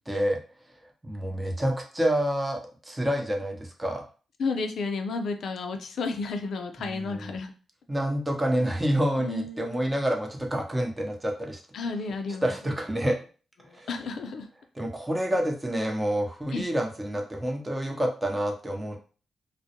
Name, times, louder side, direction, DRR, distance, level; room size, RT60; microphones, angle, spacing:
voice 1, 0.1-0.4 1.0-4.0 7.9-11.6 12.4-13.2 13.7-13.9 14.8-19.0, equal, 20° right, 1 dB, 0.7 m, -28 dB
voice 2, 4.4-7.5 9.2-10.0 11.7-12.5 13.6-14.5 16.5-16.7, left 4 dB, 75° left, 6 dB, 0.4 m, -32 dB
2.3 x 2.0 x 2.8 m, 0.37 s
supercardioid pair, 45°, 0 cm